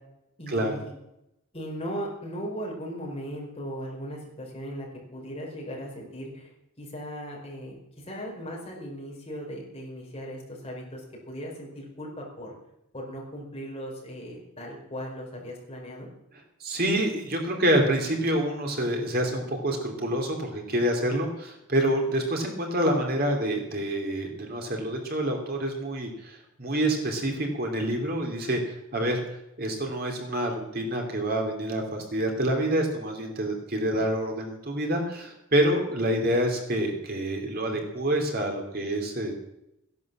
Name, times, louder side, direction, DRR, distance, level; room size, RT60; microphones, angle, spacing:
voice 1, 0.4-0.9 1.5-6.5 6.8-12.5 12.9-16.1, equal, 25° left, -2 dB, 5.0 m, -38 dB
voice 2, 16.6-29.2 29.6-39.3, right 1 dB, 45° right, 2 dB, 2.9 m, -27 dB
16.0 x 11.0 x 7.5 m, 0.85 s
head